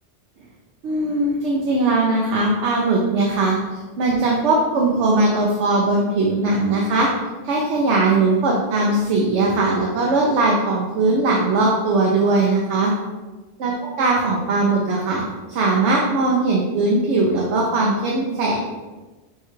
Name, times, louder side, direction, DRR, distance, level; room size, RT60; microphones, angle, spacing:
voice 1, 0.8-3.6 4.0-7.1 7.4-12.9 13.6-13.7 14.0-15.2 15.5-18.6, right 2 dB, 75° right, -2 dB, 1.0 m, -19 dB
6.4 x 2.3 x 3.1 m, 1.2 s
omnidirectional pair, 1.2 m